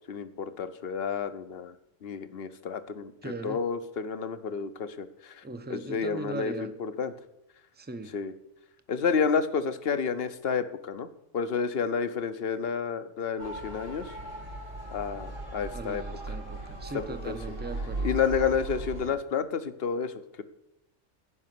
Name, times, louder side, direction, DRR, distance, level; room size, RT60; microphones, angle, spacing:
voice 1, 0.1-1.7 2.0-5.4 5.7-7.1 8.1-8.3 8.9-14.1 14.9-16.0 17.3-17.4 18.0-20.4, left 6 dB, 55° left, 11 dB, 1.1 m, -30 dB
voice 2, 3.2-3.6 5.4-6.7 7.7-8.2 15.7-18.1, right 3 dB, 10° right, 9 dB, 0.7 m, -39 dB
Motor vehicle (road) / Siren, 13.4-19.1, right 2 dB, 75° right, 4.1 m, -37 dB
15.5 x 5.5 x 9.4 m, 0.88 s
omnidirectional pair, 1.3 m